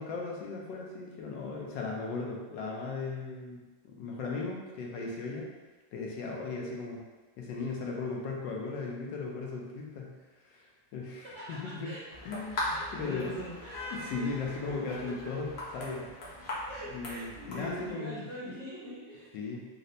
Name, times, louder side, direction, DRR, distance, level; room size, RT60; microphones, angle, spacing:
voice 1, 0.0-5.5 5.9-7.0 7.4-10.1 10.4-10.7 10.9-11.9 12.2-13.3 13.9-16.1 16.9-18.3 19.3-19.6, left 4 dB, 80° left, -1 dB, 1.3 m, -37 dB
voice 2, 11.2-12.0 12.5-13.9 14.1-14.8 15.0-15.4 16.7-19.3, equal, 55° right, -9 dB, 0.9 m, -43 dB
sound 1, 12.1-17.9, left 1 dB, 60° left, 0.7 m, -40 dB
4.0 x 2.1 x 2.6 m, 1.2 s
omnidirectional pair, 1.9 m